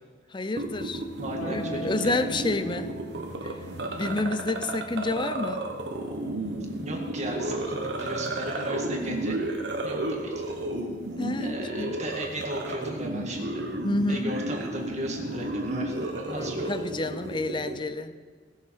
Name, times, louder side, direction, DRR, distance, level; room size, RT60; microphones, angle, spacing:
voice 1, 0.3-1.0 1.5-3.0 3.4-3.6 4.0-5.7 11.2-12.0 13.8-14.4 16.2-18.1, left 2 dB, 25° left, 11 dB, 0.6 m, -29 dB
sound 1, 0.6-17.8, right 1 dB, 90° right, 1.4 m, -33 dB
voice 2, 1.2-2.2 6.8-9.4 9.8-10.6 11.4-13.6 14.1-16.7, right 1 dB, 40° right, 0 dB, 2.0 m, -36 dB
Harp, 1.4-7.9 9.5-10.5, right 3 dB, 60° left, 3.9 m, -43 dB
19.0 x 7.3 x 4.6 m, 1.5 s
head